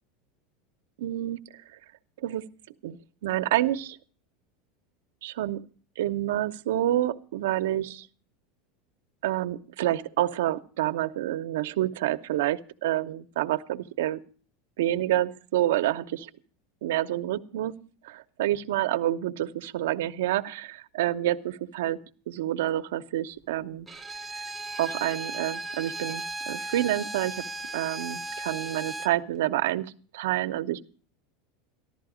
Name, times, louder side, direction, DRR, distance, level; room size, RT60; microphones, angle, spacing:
voice 1, 1.0-1.4 2.2-2.4 2.8-4.0 5.2-5.6 6.0-8.1 9.2-14.2 14.8-16.3 16.8-22.0 22.3-23.9 24.8-27.3 27.7-30.8, right 13 dB, 85° right, 9 dB, 0.8 m, -28 dB
Bowed string instrument, 23.9-29.2, right 2 dB, 5° right, 0.7 m, -36 dB
14.0 x 12.0 x 5.0 m, 0.41 s
supercardioid pair, 150°, 0 cm